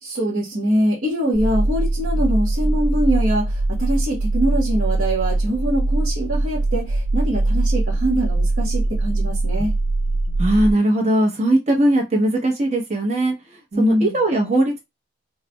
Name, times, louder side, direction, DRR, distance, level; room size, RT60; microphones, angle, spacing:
voice 1, 0.0-9.7 13.7-14.1, equal, 60° right, 1.4 m, -23 dB
sound 1, 1.3-10.7, right 2 dB, 90° right, 0.6 m, -21 dB
voice 2, 10.4-13.3 13.8-14.8, right 1 dB, 35° right, 1.0 m, -19 dB
4.5 x 2.2 x 2.3 m
head